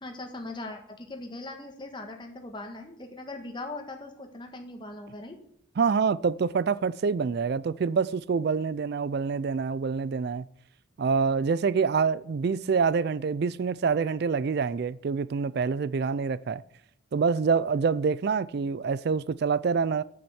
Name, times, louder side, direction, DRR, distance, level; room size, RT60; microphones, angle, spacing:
voice 1, 0.0-5.4, left 2 dB, 25° left, 1.4 m, -40 dB
voice 2, 5.8-10.5 11.0-16.6 17.1-20.0, right 5 dB, 50° right, 0.3 m, -26 dB
7.7 x 7.1 x 7.8 m
head